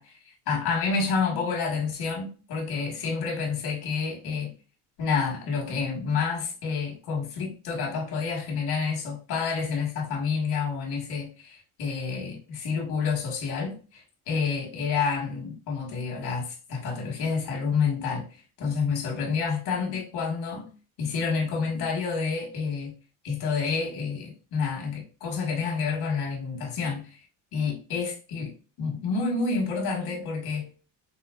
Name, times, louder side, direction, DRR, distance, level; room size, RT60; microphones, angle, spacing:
voice 1, 0.0-4.5 5.0-18.3 18.6-20.7 21.0-22.9 23.2-27.2 27.5-30.7, left 5 dB, 70° left, 1.9 m, -29 dB
5.4 x 2.2 x 2.5 m
cardioid pair, 120°, 40 cm